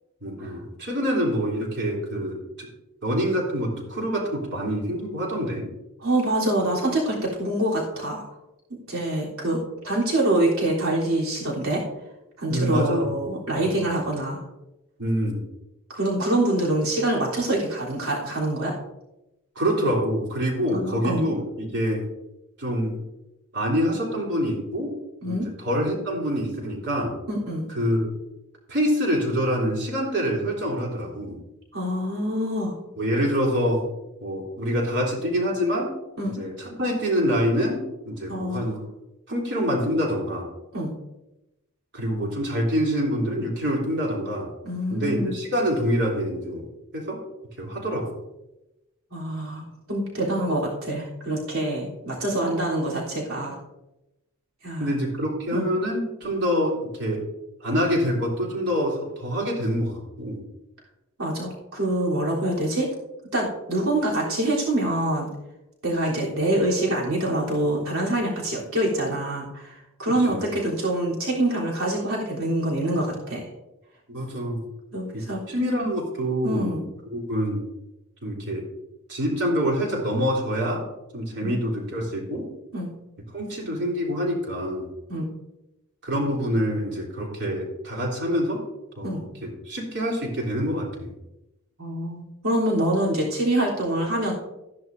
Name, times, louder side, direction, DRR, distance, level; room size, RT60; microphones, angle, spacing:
voice 1, 0.2-2.7 3.0-5.7 12.5-13.1 13.6-13.7 15.0-15.4 19.5-22.0 22.6-23.0 23.5-24.9 25.2-25.3 25.6-27.1 27.7-28.1 28.7-31.4 33.0-33.8 34.2-35.9 36.3-38.8 39.3-40.5 41.9-44.5 44.9-46.6 46.9-47.2 47.6-48.1 54.8-57.2 57.6-60.4 70.1-70.4 74.1-74.6 75.1-76.8 77.1-77.6 78.2-78.7 79.1-80.8 81.1-82.5 83.3-84.9 86.0-88.6 89.0-91.1, equal, 50° right, -2 dB, 3.4 m, -26 dB
voice 2, 6.0-8.2 8.7-11.8 12.4-14.4 15.9-18.8 20.7-21.3 25.2-25.5 27.3-27.7 31.7-32.7 36.2-36.4 38.3-38.7 40.7-41.0 44.6-45.3 49.1-53.6 54.6-54.9 55.5-55.7 61.2-62.9 63.3-65.3 65.8-73.4 74.9-75.4 76.4-76.8 81.4-81.6 82.7-82.9 85.1-85.3 89.0-89.3 91.8-94.3, right 1 dB, 70° right, -5 dB, 3.5 m, -25 dB
14.5 x 10.5 x 2.7 m, 0.95 s
head